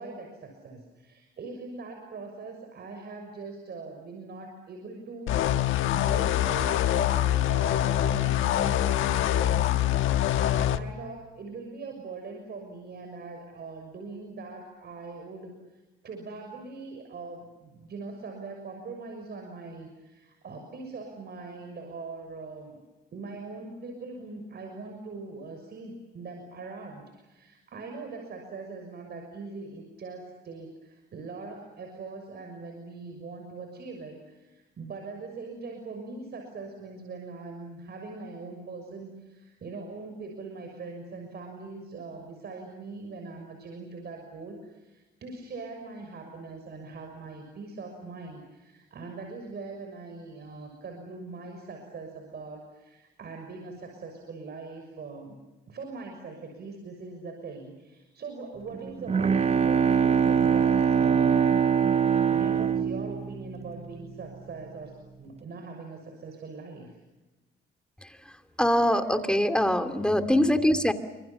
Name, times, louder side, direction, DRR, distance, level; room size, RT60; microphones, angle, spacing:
voice 1, 0.0-22.8 23.1-55.4 55.7-61.4 61.8-62.0 62.3-67.0 70.1-70.2, right 3 dB, 55° right, 4 dB, 6.5 m, -41 dB
sound 1, 5.3-10.8, left 12 dB, 85° left, 1.3 m, -24 dB
Bowed string instrument, 58.7-64.2, right 7 dB, 30° right, 0.9 m, -23 dB
voice 2, 68.0-70.9, left 1 dB, 5° left, 8 dB, 2.7 m, -24 dB
29.0 x 26.0 x 7.2 m, 1.1 s
cardioid pair, 90°, 20 cm